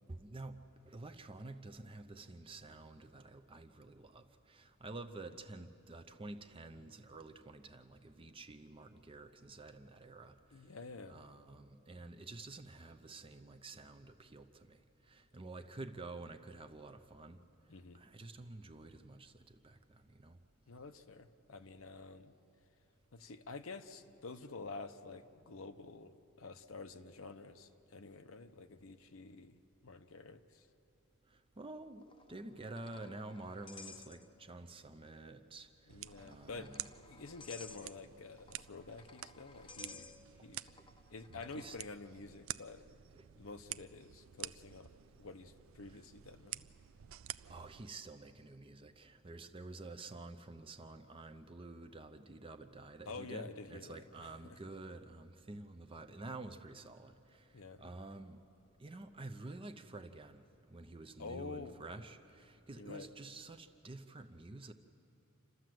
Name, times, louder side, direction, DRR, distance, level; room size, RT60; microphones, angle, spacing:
voice 1, 0.1-10.6 11.1-17.4 17.9-20.4 31.3-35.7 36.2-36.8 41.5-41.8 47.5-58.4 58.8-60.4 60.7-64.7, right 2 dB, 25° right, 7 dB, 0.6 m, -50 dB
voice 2, 10.5-11.2 17.7-18.0 20.7-22.3 23.1-30.7 35.9-36.7 37.0-40.1 40.4-40.8 41.1-42.8 43.4-44.9 45.2-46.7 53.0-54.6 57.5-57.9 61.2-61.8 62.7-63.1, left 3 dB, 65° left, 8 dB, 0.8 m, -49 dB
sound 1, 32.0-34.7 34.9-35.1 35.9-41.8, left 4 dB, 25° left, 0.7 m, -56 dB
sound 2, 35.9-47.9, right 13 dB, 65° right, 0.4 m, -50 dB
28.5 x 13.0 x 7.7 m, 2.9 s
head